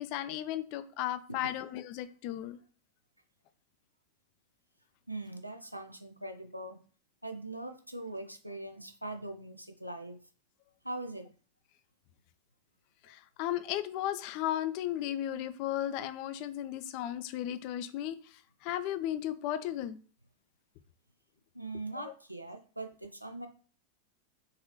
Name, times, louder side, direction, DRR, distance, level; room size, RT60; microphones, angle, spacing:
voice 1, 0.0-2.6 13.1-18.2 18.6-20.0 22.0-22.1, left 12 dB, 45° left, 12 dB, 0.3 m, -35 dB
voice 2, 5.1-6.8 7.2-10.2 10.8-11.3 13.1-13.2 21.5-23.5, right 2 dB, 85° right, 7 dB, 0.4 m, -41 dB
4.0 x 2.6 x 2.8 m, 0.41 s
figure-of-eight pair, 90°, 0 cm